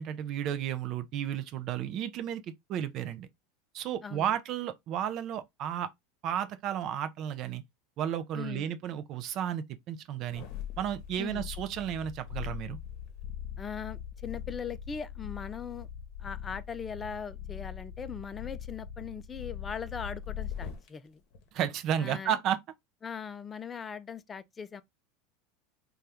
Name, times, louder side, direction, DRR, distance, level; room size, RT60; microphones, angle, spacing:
voice 1, 0.0-2.4 2.7-3.3 3.7-5.9 6.2-7.6 8.0-10.4 10.8-12.8 21.5-22.6, right 10 dB, 45° right, 0.4 m, -33 dB
voice 2, 4.0-4.3 8.3-8.7 11.2-11.4 13.6-15.9 16.2-21.2 22.0-22.3 23.0-24.8, left 6 dB, 20° left, 0.3 m, -40 dB
sound 1, 10.2-20.9 21.3-21.4, left 9 dB, 55° left, 0.8 m, -41 dB
2.8 x 2.3 x 3.3 m
supercardioid pair, 115°, 0 cm